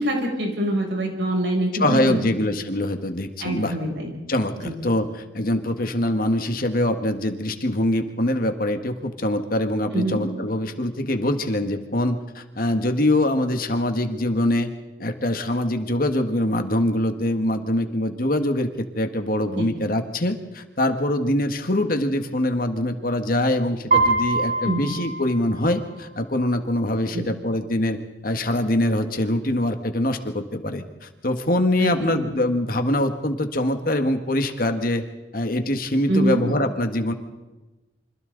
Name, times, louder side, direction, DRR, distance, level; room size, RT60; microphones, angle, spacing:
voice 1, 0.0-2.2 3.4-4.1 4.6-4.7 9.9-10.2 19.6-19.7 24.6-24.8 27.1-27.3 31.8-32.2 36.1-36.4, right 1 dB, 90° right, 0 dB, 7.3 m, -24 dB
voice 2, 1.8-3.7 4.3-14.7 15.0-35.0 35.3-37.1, left 1 dB, 55° left, 6 dB, 1.7 m, -24 dB
Piano, 23.9-25.9, right 3 dB, 45° right, 7.4 m, -23 dB
29.0 x 25.5 x 4.0 m, 1.1 s
head